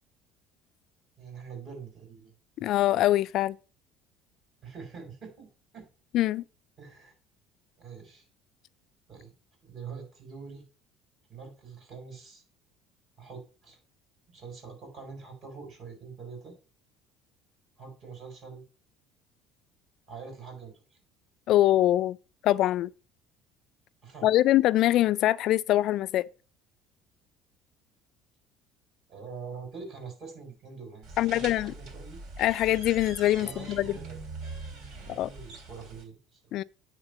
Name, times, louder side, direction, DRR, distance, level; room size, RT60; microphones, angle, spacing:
voice 1, 1.2-2.3 4.6-5.5 5.7-5.9 6.8-7.1 7.8-8.3 9.1-9.3 9.6-10.7 11.3-12.4 13.2-13.8 14.3-16.6 17.8-18.6 20.1-21.0 24.0-24.3 29.1-32.2 33.4-34.2 34.9-36.4, right 5 dB, 45° right, 5.4 m, -44 dB
voice 2, 2.6-3.6 6.1-6.4 21.5-22.2 22.4-22.9 24.2-26.3 31.2-31.7 32.4-33.9 35.1-35.3 36.5-36.6, left 14 dB, 60° left, 0.3 m, -23 dB
sound 1, 31.0-36.0, right 3 dB, 60° right, 3.5 m, -42 dB
9.0 x 3.6 x 6.8 m
cardioid pair, 125°, 0 cm